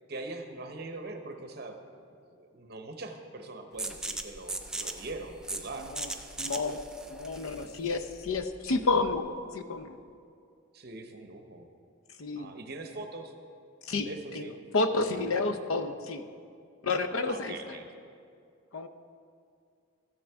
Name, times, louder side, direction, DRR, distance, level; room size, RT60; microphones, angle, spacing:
voice 1, 0.1-1.8 2.4-5.9 10.7-11.7 12.4-13.3 14.0-14.6 15.1-15.5 17.3-17.9, right 2 dB, 50° right, 5 dB, 0.9 m, -42 dB
sound 1, 3.8-9.3, right 2 dB, 5° right, 0.3 m, -39 dB
voice 2, 6.4-6.8 7.1-10.0 12.2-12.5 13.8-14.1 14.3-16.2 16.8-17.6 18.7-18.9, left 3 dB, 85° left, 9 dB, 0.6 m, -30 dB
14.0 x 9.5 x 3.5 m, 2.4 s
head